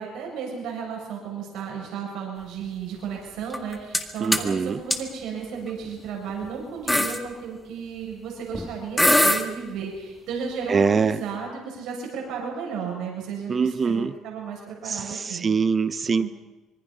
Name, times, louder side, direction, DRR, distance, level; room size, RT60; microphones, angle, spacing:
voice 1, 0.0-15.5 16.2-16.3, right 6 dB, 75° right, -1 dB, 7.2 m, -34 dB
sound 1, 3.5-4.0 4.3-4.5 4.9-5.0 5.8-6.1 6.4-6.5 6.9-7.2 8.5-8.7 9.0-9.4, left 1 dB, 5° left, 1.8 m, -20 dB
voice 2, 4.2-4.8 10.7-11.2 13.5-14.1 14.8-16.3, right 5 dB, 30° right, 13 dB, 0.8 m, -23 dB
25.5 x 24.5 x 5.6 m, 1.1 s
cardioid pair, 135°, 0 cm